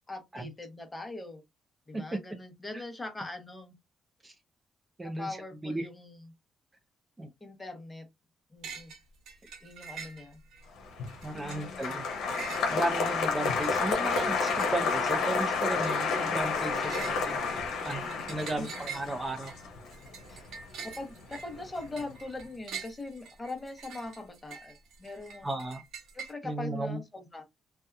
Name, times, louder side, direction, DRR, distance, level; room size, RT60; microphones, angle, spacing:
voice 1, 0.1-1.4 1.9-3.7 5.0-6.3 7.4-8.1 8.5-8.9 9.6-10.4 11.3-12.0 18.6-18.8 20.8-25.5 26.1-27.4, left 2 dB, 20° left, 0.9 m, -41 dB
voice 2, 5.0-5.9 7.2-7.3 11.2-12.1 12.7-17.4 17.8-18.0 18.3-19.5 20.3-20.4 25.4-25.8 26.4-27.0, right 1 dB, 20° right, 0.5 m, -35 dB
sound 1, 8.6-9.0 9.3-10.6 11.1-26.3, right 5 dB, 80° right, 0.7 m, -45 dB
Applause, 10.9-21.2 21.5-22.1, left 4 dB, 80° left, 0.8 m, -30 dB
2.7 x 2.3 x 2.3 m
cardioid pair, 90°, 0 cm